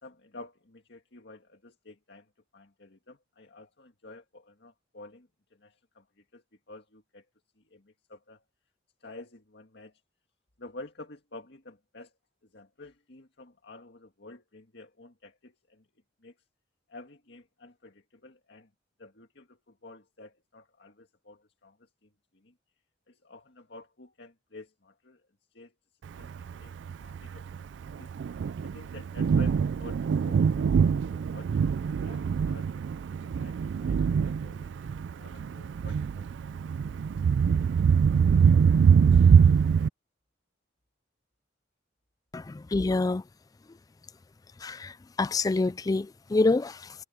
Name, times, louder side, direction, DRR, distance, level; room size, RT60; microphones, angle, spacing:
voice 1, 0.0-7.3 7.6-8.4 9.0-10.0 10.6-12.1 12.4-15.9 16.2-16.4 16.9-18.7 19.0-22.6 23.1-25.8 26.2-26.7 27.0-27.5 27.8-28.1 28.6-31.6 32.0-36.4 36.7-38.0, left 2 dB, 60° left, 2.0 m, -50 dB
Thunder, 26.2-39.9, right 6 dB, 65° right, 0.3 m, -24 dB
voice 2, 42.3-43.2 44.6-46.9, left 3 dB, 20° left, 0.3 m, -27 dB
head